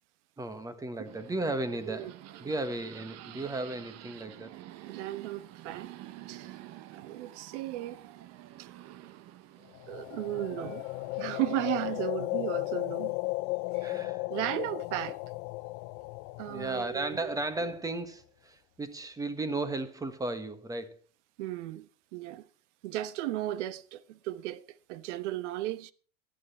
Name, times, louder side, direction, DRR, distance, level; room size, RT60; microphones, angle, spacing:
voice 1, 0.4-2.1 2.4-4.5 13.8-14.2 16.5-21.0, right 2 dB, 10° right, 1.4 m, -35 dB
sound 1, 1.1-12.0, right 14 dB, 40° right, 1.1 m, -49 dB
voice 2, 4.9-5.9 6.3-6.5 6.9-8.0 8.6-8.7 9.9-10.8 11.2-13.2 13.7-13.9 14.3-15.2 16.4-17.2 21.4-22.5 22.8-25.9, right 15 dB, 70° right, 1.2 m, -35 dB
sound 2, 9.7-17.8, left 23 dB, 45° left, 0.6 m, -35 dB
14.0 x 11.5 x 4.3 m
supercardioid pair, 140°, 37 cm